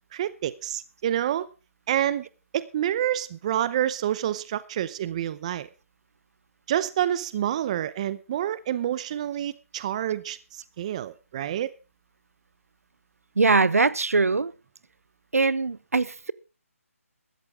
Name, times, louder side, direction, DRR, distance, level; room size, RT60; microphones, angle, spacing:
voice 1, 0.1-1.5 1.9-2.3 2.5-5.7 6.7-11.7, right 11 dB, 25° right, 0.7 m, -28 dB
voice 2, 13.4-14.5 15.3-16.3, right 4 dB, 80° right, 0.9 m, -22 dB
16.0 x 13.5 x 3.5 m
figure-of-eight pair, 160°, 8 cm